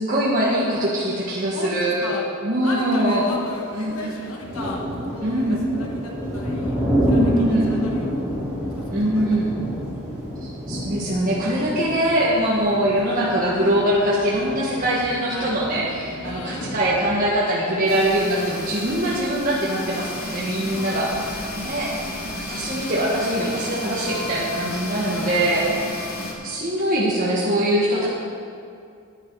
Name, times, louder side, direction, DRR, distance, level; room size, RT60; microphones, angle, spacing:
voice 1, 0.0-2.2 2.4-3.2 3.7-4.1 5.2-5.6 7.1-7.7 8.9-9.5 10.4-26.0 26.4-28.1, right 1 dB, 40° right, -7 dB, 1.4 m, -23 dB
voice 2, 1.5-2.3 2.6-8.2 8.8-9.4 15.3-15.6 16.2-16.9 20.7-21.3 21.6-21.8 25.2-25.7 27.9-28.1, left 2 dB, 80° left, 0 dB, 1.3 m, -35 dB
sound 1, 2.7-2.9 3.6-3.8 4.2-17.2, equal, 10° right, 2.8 m, -28 dB
sound 2, 17.9-26.3, left 1 dB, 45° left, 1.6 m, -32 dB
10.5 x 10.0 x 4.7 m, 2.4 s
head